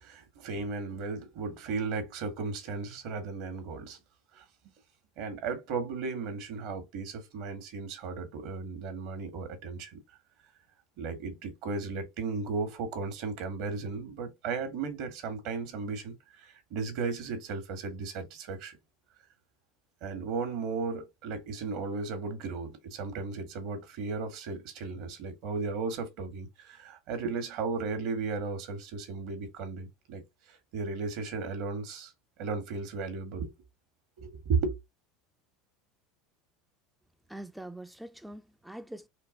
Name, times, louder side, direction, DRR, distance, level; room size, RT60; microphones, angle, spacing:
voice 1, 0.0-4.0 4.3-4.4 5.2-10.0 11.0-18.8 20.0-32.1 32.4-33.5 34.2-34.7, right 4 dB, 65° right, 1.7 m, -35 dB
voice 2, 37.3-39.1, right 1 dB, 5° right, 0.4 m, -44 dB
4.4 x 2.9 x 3.9 m
supercardioid pair, 115°, 0 cm